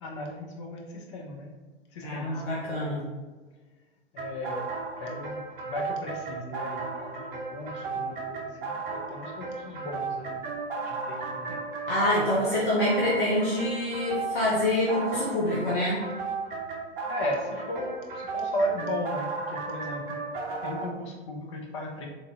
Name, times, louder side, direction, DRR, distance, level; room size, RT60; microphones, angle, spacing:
voice 1, 0.0-1.5 1.9-2.4 2.7-3.0 4.1-4.7 5.0-10.5 10.8-11.6 17.1-20.2 20.6-22.1, left 1 dB, 25° left, 0 dB, 0.4 m, -36 dB
voice 2, 2.0-3.0 11.9-16.0, left 1 dB, 50° left, -7 dB, 1.0 m, -26 dB
sound 1, 4.2-20.9, right 4 dB, 45° right, 0.7 m, -35 dB
3.9 x 2.6 x 2.2 m, 1.3 s
figure-of-eight pair, 110°, 35 cm